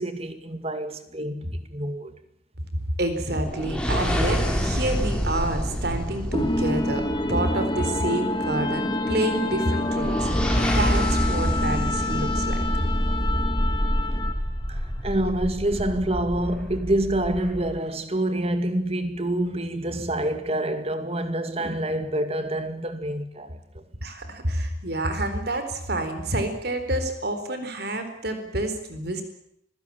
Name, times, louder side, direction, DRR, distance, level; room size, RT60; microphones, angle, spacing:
voice 1, 0.0-2.1 14.7-23.6, right 1 dB, 30° right, 2.2 m, -27 dB
voice 2, 3.0-10.5 10.7-12.7 24.0-29.2, right 1 dB, 55° right, 4.1 m, -28 dB
sound 1, 3.3-7.7 9.8-17.8, equal, 5° left, 4.1 m, -27 dB
sound 2, 6.3-14.5, left 1 dB, 25° left, 2.4 m, -27 dB
25.5 x 16.5 x 8.8 m
head